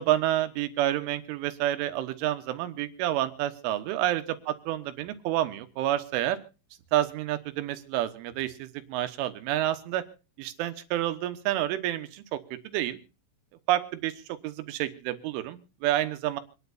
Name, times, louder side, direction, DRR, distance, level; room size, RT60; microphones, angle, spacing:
voice 1, 0.0-6.4 6.9-10.1 10.4-12.4 12.7-13.0 13.7-16.4, right 13 dB, 85° right, 9 dB, 3.6 m, -29 dB
26.5 x 10.5 x 2.7 m, 0.33 s
omnidirectional pair, 5.5 m